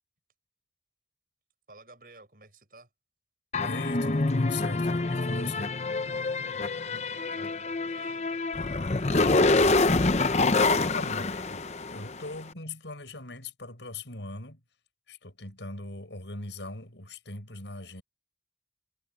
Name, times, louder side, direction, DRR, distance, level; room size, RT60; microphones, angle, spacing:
voice 1, 1.7-2.9 6.8-8.3 8.6-9.6, right 3 dB, 50° right, 7.7 m, -55 dB
sound 1, 3.5-12.2, left 3 dB, 40° left, 0.7 m, -26 dB
voice 2, 3.6-5.7 10.7-14.6 15.1-18.0, left 2 dB, 90° left, 7.4 m, -40 dB
head